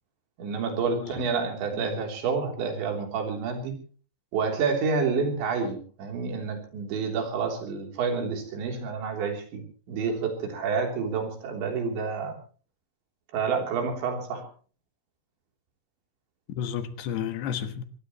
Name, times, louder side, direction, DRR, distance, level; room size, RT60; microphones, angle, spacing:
voice 1, 0.4-3.8 4.3-9.6 9.9-12.4 13.3-14.5, right 5 dB, 80° right, 5.7 m, -29 dB
voice 2, 0.9-1.3 1.7-2.1 16.5-17.8, left 9 dB, 75° left, 3.4 m, -32 dB
24.0 x 19.0 x 3.1 m
omnidirectional pair, 5.1 m